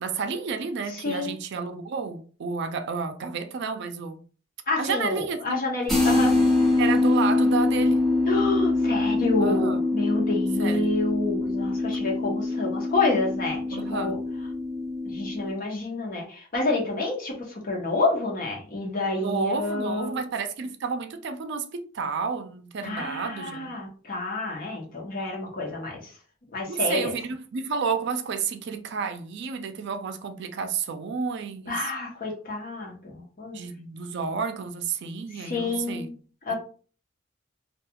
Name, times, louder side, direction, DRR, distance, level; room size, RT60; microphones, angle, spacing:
voice 1, 0.0-4.2 4.8-5.6 6.8-8.0 9.4-9.8 10.6-10.8 13.7-14.2 19.2-23.7 26.7-31.8 33.5-36.1 36.5-36.6, right 5 dB, 60° right, 0.4 m, -31 dB
voice 2, 0.9-1.4 4.7-6.4 8.3-14.2 15.0-20.2 22.8-26.1 26.5-27.1 31.7-33.6 35.3-36.1 36.5-36.6, left 2 dB, 45° left, 0.9 m, -28 dB
sound 1, 5.9-15.5, left 2 dB, ahead, 0.6 m, -24 dB
2.4 x 2.3 x 2.8 m
head